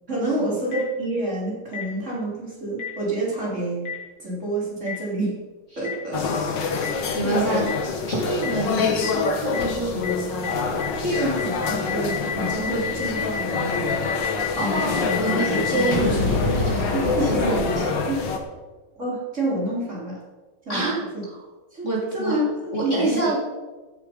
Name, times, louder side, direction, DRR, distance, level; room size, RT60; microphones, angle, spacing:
voice 1, 0.1-3.9 4.2-5.4 5.8-6.3 7.2-7.7 11.0-14.0 14.6-14.8 15.5-15.6 16.9-18.2 19.0-20.2 20.7-21.2 21.7-21.9 22.1-22.5 22.8-23.3, right 1 dB, 35° right, -6 dB, 4.0 m, -28 dB
Boom, 0.7-0.8 1.7-1.8 2.8-2.9 3.8-3.9 4.9-5.0 5.8-5.9 6.8-6.9 7.7-7.8 8.4-8.5 9.0-9.1 9.5-9.6 10.0-10.1 10.4-10.5 10.8-18.3, left 3 dB, 85° left, 3.8 m, -28 dB
sound 1, 6.1-18.4, left 4 dB, 60° left, 1.8 m, -26 dB
voice 2, 7.1-7.7 8.1-10.1 14.0-14.2 14.6-18.0 20.7-21.0 21.3-21.4 21.8-22.4 22.7-23.4, right 2 dB, 35° left, -3 dB, 2.8 m, -27 dB
Rain, 10.4-17.1, equal, 10° left, 2.7 m, -45 dB
14.5 x 8.0 x 5.3 m, 1.3 s
omnidirectional pair, 2.3 m